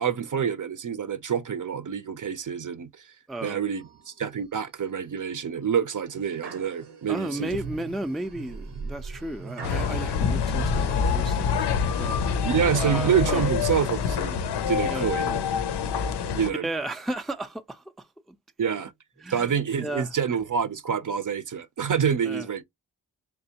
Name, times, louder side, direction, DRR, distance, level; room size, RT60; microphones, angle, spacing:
voice 1, 0.0-2.9 3.4-7.6 12.4-14.4 14.7-15.4 16.3-16.7 18.6-18.9 19.3-22.6, right 7 dB, 50° right, 0.6 m, -27 dB
voice 2, 3.3-3.6 7.1-12.2 12.8-13.5 14.8-15.1 16.6-18.1 18.6-18.8 19.2-20.1 22.2-22.5, right 1 dB, ahead, 0.4 m, -34 dB
sound 1, 3.7-4.4 4.9-5.3 5.9-9.9 10.4-10.8, right 4 dB, 85° right, 0.9 m, -40 dB
sound 2, 9.6-16.5, left 6 dB, 90° left, 0.5 m, -26 dB
3.5 x 3.1 x 2.8 m
cardioid pair, 60°, 39 cm